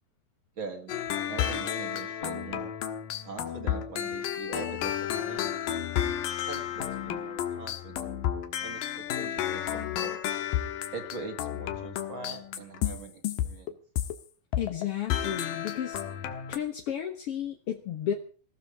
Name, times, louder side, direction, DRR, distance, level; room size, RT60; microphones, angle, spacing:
voice 1, 0.6-1.0 1.3-2.7 3.2-5.7 6.5-8.1 8.6-10.2 10.9-13.8, right 4 dB, 40° right, 5 dB, 2.5 m, -42 dB
sound 1, 0.9-14.2 14.5-14.8 15.1-16.6, left 10 dB, 70° left, 2.9 m, -32 dB
voice 2, 14.6-16.0 16.5-18.1, left 10 dB, 55° left, 4 dB, 1.7 m, -32 dB
20.0 x 15.0 x 4.9 m, 0.40 s
omnidirectional pair, 4.1 m